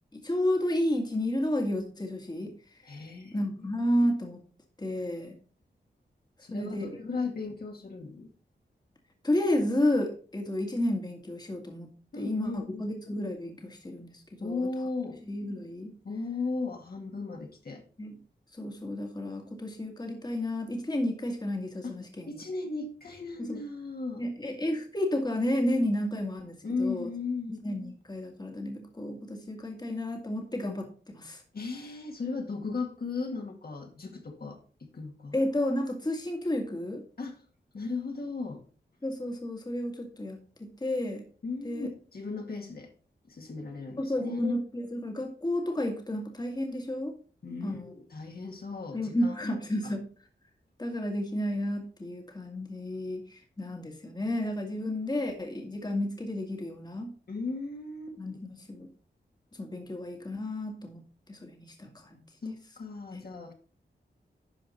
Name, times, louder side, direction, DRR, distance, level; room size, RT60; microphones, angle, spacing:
voice 1, 0.1-2.8 3.2-4.4 4.8-5.4 6.5-7.0 9.2-11.9 12.2-14.7 15.2-15.9 18.0-18.1 18.5-22.3 23.4-23.6 24.2-27.1 27.6-31.4 35.3-37.0 39.0-41.2 41.6-41.9 44.0-47.1 47.6-47.9 48.9-50.1 50.8-57.1 58.2-58.9 59.6-61.0 61.3-62.2 63.1-63.3, left 1 dB, 20° left, 3 dB, 1.9 m, -31 dB
voice 2, 2.9-3.5 3.8-3.9 6.4-8.3 12.1-12.8 14.4-15.2 16.0-17.8 21.8-21.9 22.3-24.3 26.6-27.6 31.5-35.4 37.2-37.4 37.7-38.6 41.4-42.9 43.2-44.5 47.4-49.5 49.8-49.9 57.3-58.2 62.4-63.5, left 3 dB, 55° left, 2 dB, 2.1 m, -36 dB
11.0 x 5.1 x 4.2 m, 0.40 s
cardioid pair, 70°, 18 cm